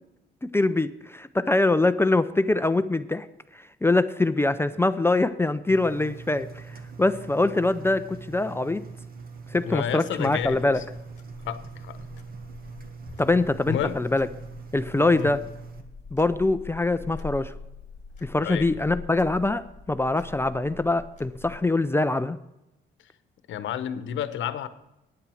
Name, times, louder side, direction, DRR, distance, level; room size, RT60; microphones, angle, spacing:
voice 1, 0.5-3.3 3.5-8.8 9.5-10.8 13.2-14.3 14.7-15.4 16.1-17.5 18.2-22.4, left 2 dB, 10° left, 11 dB, 0.5 m, -24 dB
Engine, 5.7-15.8, right 5 dB, 50° right, 1.7 m, -42 dB
voice 2, 9.6-10.8 11.4-12.0 13.7-14.0 15.2-15.3 18.4-18.7 23.5-24.7, left 9 dB, 75° left, 12 dB, 1.0 m, -30 dB
sound 1, 10.4-21.6, left 5 dB, 40° left, 1.6 m, -44 dB
9.7 x 8.8 x 6.3 m, 0.90 s
cardioid pair, 90°, 20 cm